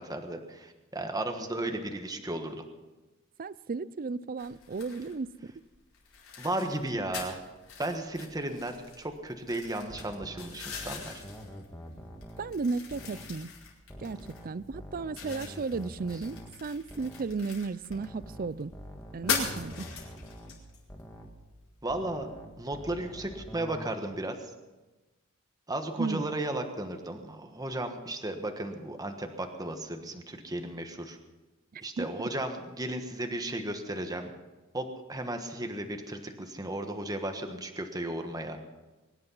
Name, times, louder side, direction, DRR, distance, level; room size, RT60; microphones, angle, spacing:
voice 1, 0.0-2.6 6.4-7.4 7.8-11.2 21.8-22.3 22.6-24.5 25.7-31.2 31.8-34.3 34.7-38.6, right 1 dB, 20° right, 5 dB, 1.3 m, -35 dB
voice 2, 3.4-5.3 12.4-13.5 14.0-18.7 19.1-19.9 26.0-26.3 31.7-32.1, right 4 dB, 40° right, 18 dB, 0.5 m, -34 dB
sound 1, 4.4-22.8, left 5 dB, 75° left, 4.7 m, -41 dB
sound 2, 9.9-13.4 13.9-17.4 17.9-21.4 21.9-23.9, equal, 10° left, 1.7 m, -46 dB
23.0 x 11.0 x 5.5 m, 1.2 s
head